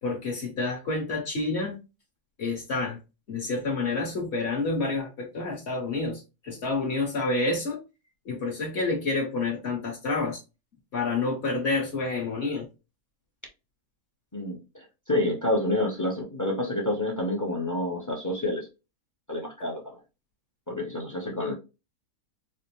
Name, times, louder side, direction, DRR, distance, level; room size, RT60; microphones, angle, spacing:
voice 1, 0.0-1.8 2.4-3.0 3.3-7.8 8.2-10.4 10.9-12.7, left 3 dB, 50° left, 1.2 m, -29 dB
voice 2, 14.3-18.7 19.3-20.0 20.7-21.5, left 1 dB, 20° left, 0.6 m, -28 dB
4.3 x 2.1 x 2.9 m
omnidirectional pair, 1.6 m